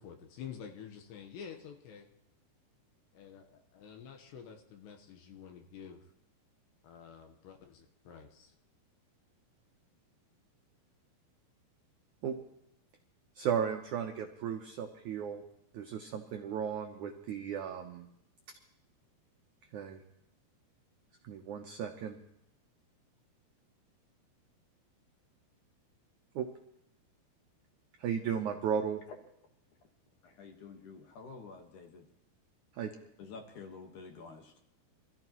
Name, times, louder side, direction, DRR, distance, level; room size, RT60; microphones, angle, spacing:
voice 1, 0.0-2.1 3.1-6.1 6.8-8.5, left 7 dB, 80° left, 4 dB, 3.3 m, -49 dB
voice 2, 13.4-15.4 15.7-18.1 19.7-20.0 21.2-22.2 26.4-26.5 28.0-29.0 32.7-32.9, right 8 dB, 85° right, 3 dB, 1.7 m, -35 dB
voice 3, 30.2-32.1 33.2-34.6, left 4 dB, 60° left, 4 dB, 2.5 m, -49 dB
25.0 x 14.5 x 3.1 m, 0.83 s
omnidirectional pair, 4.9 m